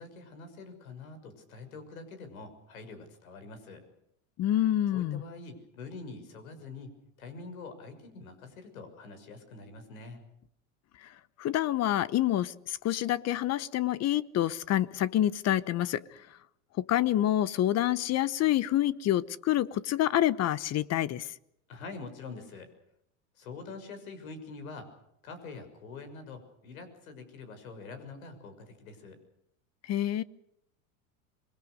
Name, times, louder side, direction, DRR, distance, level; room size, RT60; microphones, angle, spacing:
voice 1, 0.0-3.9 4.9-10.2 21.7-22.7 23.4-24.9 25.2-29.2, left 3 dB, 80° left, 6.5 m, -45 dB
voice 2, 4.4-5.2 11.4-16.0 16.8-21.3 29.9-30.2, left 13 dB, 40° left, 1.1 m, -27 dB
27.0 x 21.5 x 6.5 m
hypercardioid pair, 100°, 42 cm